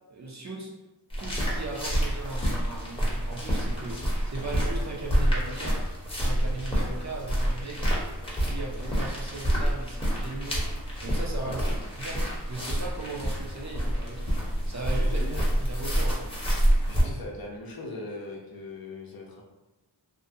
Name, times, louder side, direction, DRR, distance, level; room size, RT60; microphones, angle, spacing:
voice 1, 0.1-0.7 1.2-5.8 6.1-7.9 8.4-10.7 11.0-11.7 12.0-14.4 14.7-15.2 15.6-16.3, right 2 dB, 40° right, -2 dB, 0.5 m, -38 dB
sound 1, 1.1-17.0, equal, 10° left, 0.8 m, -28 dB
voice 2, 11.4-11.8 15.0-15.5 16.9-19.4, left 2 dB, 50° left, -2 dB, 0.6 m, -39 dB
2.5 x 2.1 x 2.6 m, 1.1 s
wide cardioid pair, 55°, 46 cm